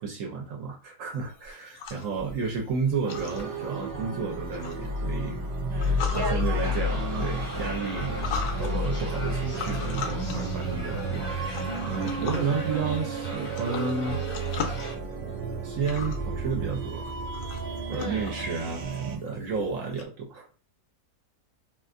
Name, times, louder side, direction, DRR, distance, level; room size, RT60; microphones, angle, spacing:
voice 1, 0.0-5.5 6.1-14.2 15.6-17.1 17.9-20.6, right 5 dB, 65° right, 1 dB, 1.0 m, -32 dB
sound 1, 1.1-20.0, left 5 dB, 80° left, 1.1 m, -41 dB
sound 2, 3.0-19.2, right 1 dB, 85° right, 0.4 m, -31 dB
voice 2, 5.7-6.8 17.9-18.3, equal, 20° right, -3 dB, 0.7 m, -35 dB
sound 3, 6.6-15.0, left 1 dB, 35° left, 0.5 m, -41 dB
2.8 x 2.4 x 2.4 m, 0.36 s
omnidirectional pair, 1.6 m